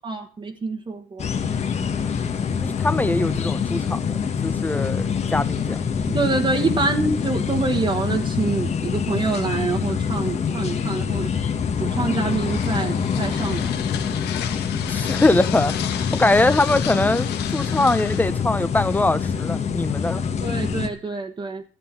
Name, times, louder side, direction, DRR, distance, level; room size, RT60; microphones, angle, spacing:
voice 1, 0.0-1.2 6.1-11.3 11.8-13.7 20.4-21.6, right 3 dB, 30° right, 1.4 m, -26 dB
sound 1, 1.2-20.9, left 6 dB, 40° left, 1.6 m, -25 dB
voice 2, 2.6-4.0 4.4-5.0 5.3-5.8 14.9-15.7 16.1-20.2, left 2 dB, 10° left, 0.9 m, -22 dB
sound 2, 11.9-19.4, left 11 dB, 80° left, 1.6 m, -35 dB
14.0 x 7.8 x 7.4 m
cardioid pair, 110°, 17 cm